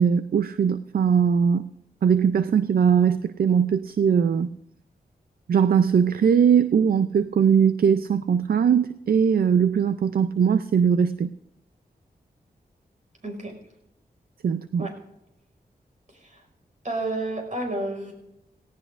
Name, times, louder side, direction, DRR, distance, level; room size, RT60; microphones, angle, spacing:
voice 1, 0.0-1.7 2.0-4.5 5.5-11.3 14.4-14.9, right 7 dB, 70° right, 13 dB, 0.4 m, -20 dB
voice 2, 13.2-13.5 14.8-14.9 16.2-16.3 16.8-18.1, right 2 dB, 50° right, 2 dB, 5.2 m, -30 dB
18.0 x 17.5 x 2.5 m, 0.86 s
wide cardioid pair, 80°, 16 cm